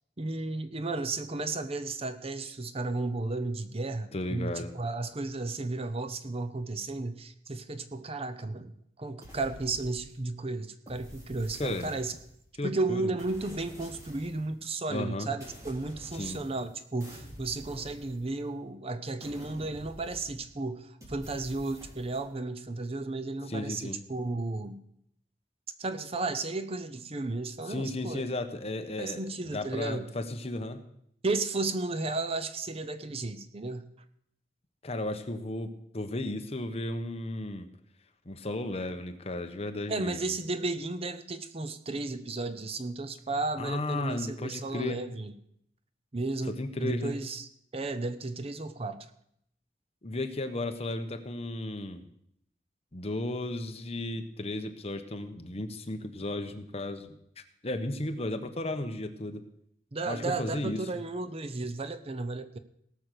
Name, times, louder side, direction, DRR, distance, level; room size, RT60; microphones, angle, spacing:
voice 1, 0.2-12.2 12.6-24.8 25.8-28.2 29.0-30.1 31.2-33.9 39.9-45.3 46.1-47.5 47.7-49.1 59.9-62.6, right 3 dB, 35° right, 11 dB, 0.8 m, -34 dB
voice 2, 4.1-4.7 11.6-11.9 12.6-13.0 14.9-15.3 16.1-16.4 23.5-24.0 27.7-30.8 34.8-37.7 38.2-40.2 43.6-45.0 46.6-47.2 50.0-52.1 52.9-57.2 57.6-59.4 60.0-60.8, left 2 dB, 35° left, 7 dB, 1.1 m, -34 dB
sound 1, 9.2-10.3 10.9-12.5 13.2-14.5 15.4-16.7 17.0-18.6 19.2-20.6 21.0-22.3, equal, 20° right, 3.2 m, -49 dB
18.0 x 6.2 x 6.8 m, 0.72 s
head